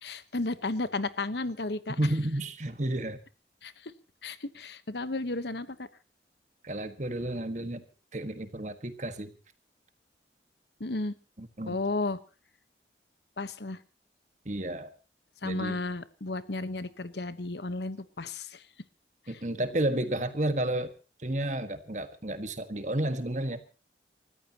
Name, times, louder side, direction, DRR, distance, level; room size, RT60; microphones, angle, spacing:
voice 1, 0.0-2.0 3.6-3.9 4.2-5.9 10.8-11.1 11.7-12.2 13.4-13.8 15.4-18.6 19.3-19.4, left 2 dB, 70° left, 14 dB, 1.1 m, -33 dB
voice 2, 2.0-3.2 6.6-7.8 8.1-9.3 11.4-11.8 14.4-14.9 15.4-15.8 19.3-20.9 21.2-23.6, right 1 dB, 40° right, 10 dB, 1.6 m, -31 dB
29.0 x 14.0 x 2.9 m, 0.32 s
head